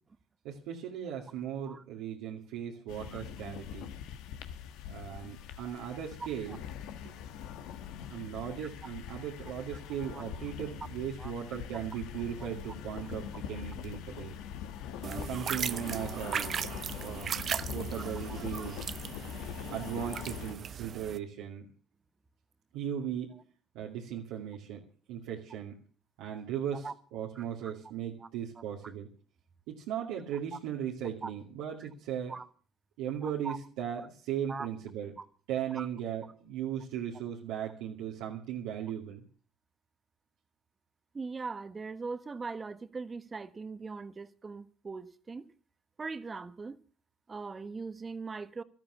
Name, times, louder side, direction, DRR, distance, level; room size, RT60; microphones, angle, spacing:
voice 1, 0.4-3.9 4.9-6.6 7.0-7.1 8.1-14.4 15.0-16.5 17.0-17.3 17.7-18.9 19.7-21.7 22.7-23.4 23.7-24.8 25.1-25.8 26.2-29.1 29.7-32.3 33.0-35.1 35.5-39.2, right 9 dB, 80° right, 2.4 m, -37 dB
sound 1, 2.9-20.5, left 9 dB, 75° left, 1.5 m, -43 dB
sound 2, 15.0-21.2, right 8 dB, 45° right, 0.7 m, -37 dB
voice 2, 33.2-33.6 34.5-34.7 35.2-35.3 35.7-35.9 41.1-45.5 46.0-46.8 47.3-48.6, right 4 dB, 30° right, 1.2 m, -40 dB
13.0 x 12.0 x 6.9 m
supercardioid pair, 80°, 0 cm